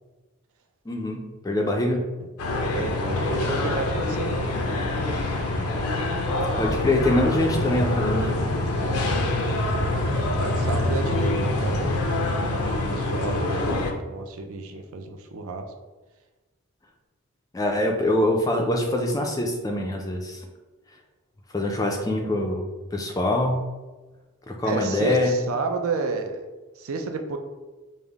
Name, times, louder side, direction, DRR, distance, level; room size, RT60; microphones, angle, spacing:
voice 1, 0.9-2.0 6.6-8.4 12.6-13.0 17.5-20.4 21.5-22.6 22.9-23.6 24.5-25.3, left 1 dB, 15° left, 2 dB, 0.3 m, -24 dB
sound 1, 2.4-13.9, left 2 dB, 85° left, 0.5 m, -25 dB
voice 2, 2.7-4.7 8.8-9.6 10.3-12.1 12.4-13.7 14.1-15.7 24.6-26.5 26.8-27.4, right 4 dB, 70° right, 5 dB, 0.4 m, -31 dB
5.3 x 2.1 x 3.4 m, 1.2 s
head